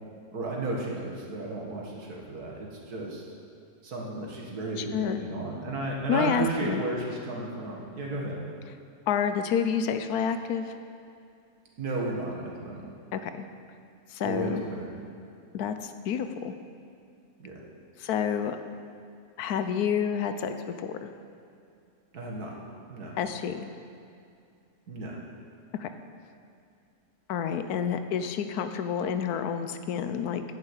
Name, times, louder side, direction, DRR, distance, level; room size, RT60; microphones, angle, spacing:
voice 1, 0.3-3.2 3.8-8.4 11.8-12.8 14.2-14.9 17.4-17.6 22.1-22.5 22.9-23.1 24.9-25.2, right 2 dB, 90° right, -2 dB, 2.2 m, -33 dB
voice 2, 4.8-5.2 6.1-6.8 9.1-10.7 13.1-13.4 14.1-14.6 15.5-16.5 18.0-18.6 19.4-21.1 23.2-23.7 25.8-25.9 27.3-30.4, left 7 dB, 90° left, 9 dB, 1.2 m, -29 dB
11.0 x 5.7 x 8.1 m, 2.5 s
omnidirectional pair, 1.6 m